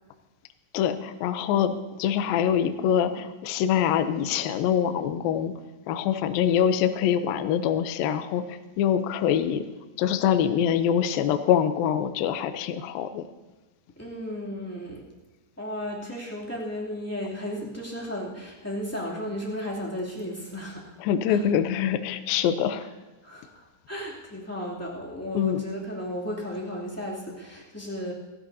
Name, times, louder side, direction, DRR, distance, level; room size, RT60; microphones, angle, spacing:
voice 1, 0.7-5.5 5.9-9.6 10.0-13.2 21.0-22.9 25.3-25.6, left 9 dB, 90° left, 9 dB, 2.0 m, -24 dB
voice 2, 14.0-15.1 15.6-21.0 21.3-21.4 23.2-28.1, equal, 5° left, -5 dB, 1.6 m, -34 dB
27.5 x 13.0 x 2.8 m, 1.1 s
omnidirectional pair, 5.2 m